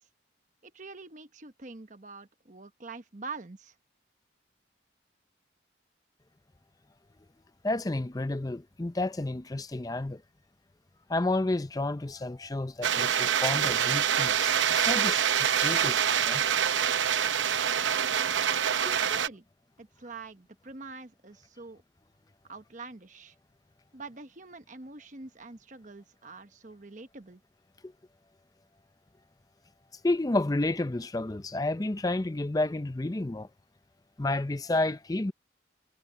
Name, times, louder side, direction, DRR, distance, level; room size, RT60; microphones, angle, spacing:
voice 1, 0.6-3.7 19.1-19.4 19.8-21.8 22.4-23.3 23.9-27.4, right 4 dB, 40° right, 1.1 m, -45 dB
voice 2, 7.6-10.2 11.1-16.4 18.8-19.0 30.0-33.5 34.2-35.3, left 2 dB, 20° left, 0.5 m, -31 dB
sound 1, 12.8-19.3, right 8 dB, 80° right, 0.7 m, -26 dB
head